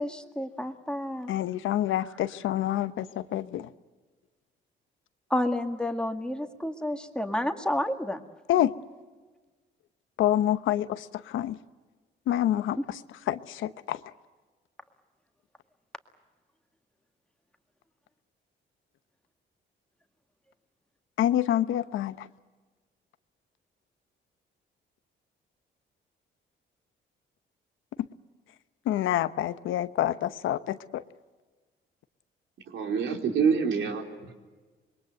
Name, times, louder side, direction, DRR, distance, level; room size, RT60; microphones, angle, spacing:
voice 1, 0.0-1.3 5.3-8.2 12.8-12.9, left 1 dB, 5° left, 5 dB, 2.0 m, -30 dB
voice 2, 1.3-3.7 8.5-8.7 10.2-11.6 12.3-12.8 13.3-14.0 21.2-22.3 28.9-31.0, left 12 dB, 80° left, 12 dB, 1.0 m, -27 dB
voice 3, 32.7-34.3, right 6 dB, 75° right, 2 dB, 3.9 m, -26 dB
26.0 x 22.0 x 7.9 m, 1.3 s
cardioid pair, 90°, 20 cm